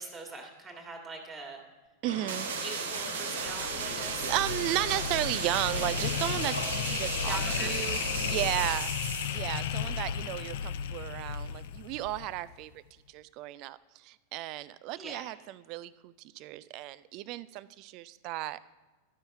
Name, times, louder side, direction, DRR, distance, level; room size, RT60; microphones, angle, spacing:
voice 1, 0.0-1.6 2.6-4.3 7.3-7.7 14.9-15.2, right 3 dB, 20° right, 3 dB, 1.6 m, -42 dB
voice 2, 2.0-2.5 4.0-8.9 9.2-12.7 13.1-18.6, right 15 dB, 40° right, 18 dB, 0.3 m, -34 dB
sound 1, 2.0-8.7, equal, 85° right, 1.4 m, -39 dB
sound 2, 2.3-9.5, right 6 dB, 60° right, 0.9 m, -36 dB
sound 3, 3.4-12.5, left 8 dB, 55° left, 0.4 m, -34 dB
12.5 x 5.5 x 4.5 m, 1.3 s
figure-of-eight pair, 90°, 0 cm